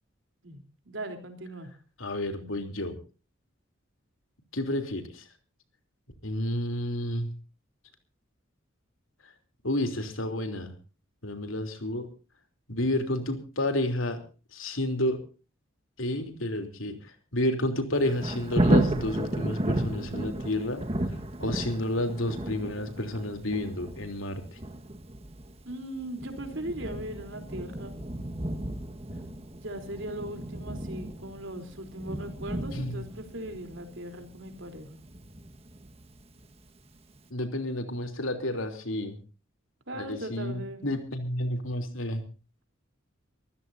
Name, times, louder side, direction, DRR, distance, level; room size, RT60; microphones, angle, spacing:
voice 1, 0.4-1.7 25.7-27.9 29.6-35.0 39.9-40.9, right 1 dB, 70° right, 6 dB, 3.6 m, -39 dB
voice 2, 2.0-3.0 4.5-5.3 6.2-7.3 9.6-10.7 11.2-12.1 12.7-14.2 14.5-15.2 16.0-16.9 17.3-20.8 21.4-24.6 32.7-33.1 37.3-39.2 39.9-42.2, left 1 dB, 85° left, 6 dB, 3.3 m, -30 dB
Thunder, 17.9-36.7 37.1-37.2, right 1 dB, 30° right, 1.6 m, -33 dB
24.5 x 15.0 x 2.7 m, 0.35 s
head